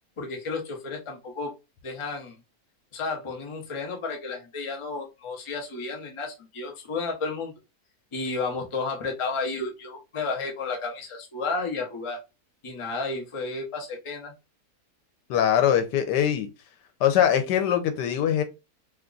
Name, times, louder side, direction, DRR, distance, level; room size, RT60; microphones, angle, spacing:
voice 1, 0.2-1.5 1.8-2.4 2.9-7.5 8.1-12.2 12.6-14.3, left 3 dB, 55° left, 0.3 m, -32 dB
voice 2, 15.3-16.5 17.0-18.4, left 9 dB, 85° left, 1.3 m, -22 dB
2.9 x 2.3 x 3.7 m
omnidirectional pair, 1.8 m